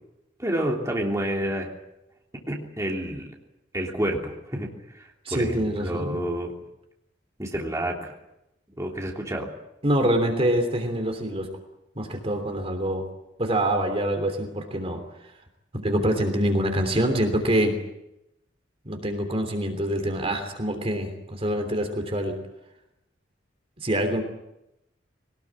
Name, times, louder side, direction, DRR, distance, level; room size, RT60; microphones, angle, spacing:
voice 1, 0.4-1.7 2.5-3.3 3.7-6.5 7.4-8.1 8.8-9.5, right 1 dB, 15° right, 0 dB, 3.2 m, -29 dB
voice 2, 5.2-6.2 9.8-11.5 11.9-13.1 13.4-15.0 15.7-17.7 18.8-22.3 23.8-24.2, right 1 dB, 30° right, 6 dB, 3.2 m, -25 dB
22.0 x 19.5 x 8.9 m, 0.88 s
head